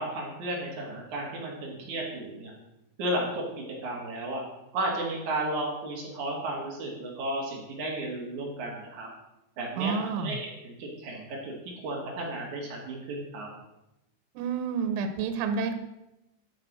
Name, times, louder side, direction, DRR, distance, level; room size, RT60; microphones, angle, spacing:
voice 1, 0.0-2.5 3.0-4.4 4.7-9.1 9.6-13.5, right 1 dB, 50° right, -1 dB, 2.9 m, -33 dB
voice 2, 9.8-10.4 14.4-15.8, right 5 dB, 90° right, 8 dB, 3.5 m, -29 dB
12.0 x 6.6 x 6.2 m, 0.90 s
omnidirectional pair, 5.5 m